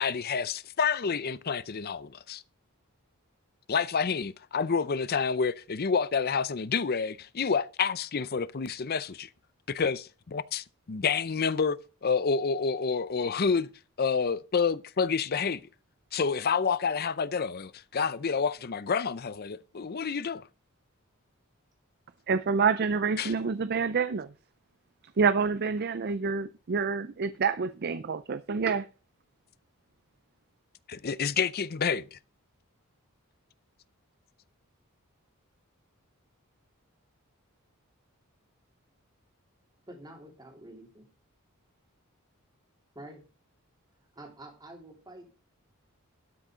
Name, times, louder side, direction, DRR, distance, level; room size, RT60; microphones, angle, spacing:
voice 1, 0.0-2.4 3.7-9.3 9.7-13.7 14.0-15.6 16.1-20.5 23.2-23.3 30.9-32.2, left 5 dB, 45° left, 0.6 m, -29 dB
voice 2, 22.3-24.3 25.2-28.9, right 5 dB, 45° right, 0.5 m, -27 dB
voice 3, 39.9-41.1 42.9-43.2 44.1-45.3, right 1 dB, 20° right, 3.2 m, -47 dB
12.5 x 6.3 x 5.0 m
head